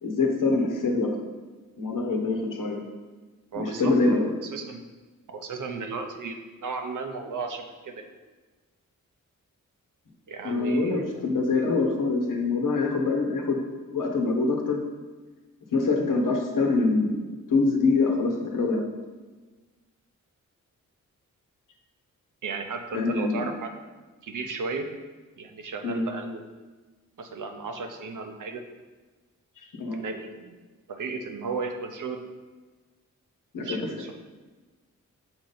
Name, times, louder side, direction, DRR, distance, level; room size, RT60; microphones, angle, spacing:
voice 1, 0.0-1.1 1.8-2.8 3.5-4.3 10.4-13.6 13.9-14.8 15.7-17.2 17.5-18.8 22.9-23.5 25.8-26.0 29.8-30.0 33.5-33.8, left 3 dB, 70° left, 1 dB, 1.0 m, -24 dB
voice 2, 3.5-4.2 4.5-4.8 5.3-8.1 10.3-11.3 22.4-23.7 24.2-24.9 25.4-26.4 27.2-28.6 30.0-30.6 30.9-32.2 33.6-34.1, right 4 dB, 65° right, 5 dB, 0.8 m, -34 dB
6.1 x 3.9 x 3.9 m, 1.3 s
cardioid pair, 45°, 34 cm